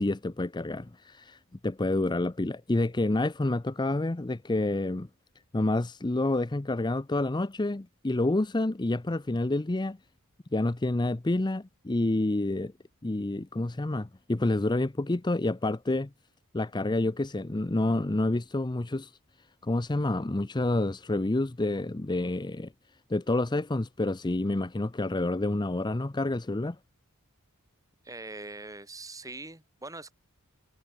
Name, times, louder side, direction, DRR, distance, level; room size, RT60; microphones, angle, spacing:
voice 1, 0.0-5.1 5.5-10.0 10.5-12.7 13.0-16.1 16.5-19.1 19.6-22.7 23.1-26.8, left 2 dB, 20° left, 0.6 m, -28 dB
voice 2, 28.0-30.1, right 2 dB, 15° right, 6.3 m, -42 dB
head